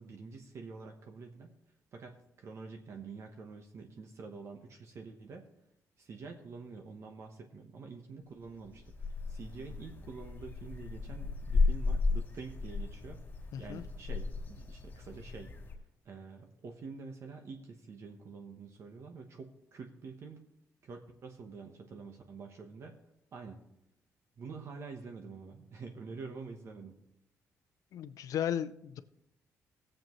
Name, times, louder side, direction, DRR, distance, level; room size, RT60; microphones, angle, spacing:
voice 1, 0.0-1.5 1.9-5.5 6.0-20.4 20.8-23.0 23.3-23.6 24.4-27.0, right 4 dB, 50° right, 4 dB, 1.0 m, -47 dB
sound 1, 8.5-15.7, left 3 dB, 30° left, 2.6 m, -34 dB
voice 2, 13.5-13.8 27.9-29.0, left 10 dB, 70° left, 13 dB, 0.5 m, -35 dB
18.5 x 7.6 x 3.1 m, 0.81 s
cardioid pair, 125°, 6 cm